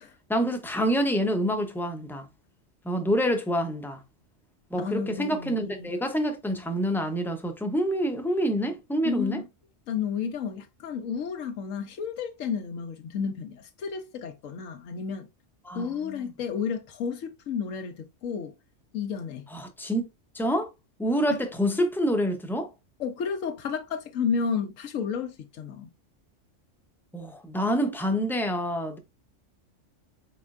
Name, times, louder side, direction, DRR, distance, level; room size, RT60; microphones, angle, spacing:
voice 1, 0.3-2.3 2.8-4.0 4.7-9.4 15.7-16.2 19.5-20.1 20.3-20.7 21.0-22.7 27.1-29.0, equal, 5° left, 0.4 m, -27 dB
voice 2, 4.8-5.9 9.0-9.4 9.9-15.3 15.7-18.5 18.9-19.4 21.3-21.4 23.0-25.9, left 6 dB, 85° left, 1.1 m, -32 dB
4.3 x 4.3 x 2.4 m
omnidirectional pair, 1.3 m